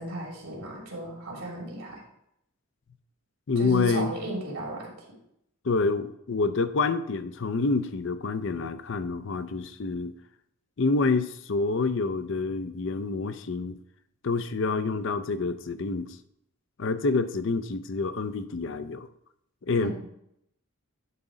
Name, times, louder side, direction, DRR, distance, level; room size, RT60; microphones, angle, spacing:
voice 1, 0.0-2.0 3.5-4.9 19.8-19.9, right 1 dB, 75° right, -2 dB, 3.0 m, -35 dB
voice 2, 3.5-4.1 5.6-10.1 10.8-13.8 14.2-16.2 16.8-19.1 19.6-19.9, left 3 dB, 55° left, 11 dB, 0.5 m, -27 dB
11.0 x 3.9 x 4.9 m, 0.76 s
head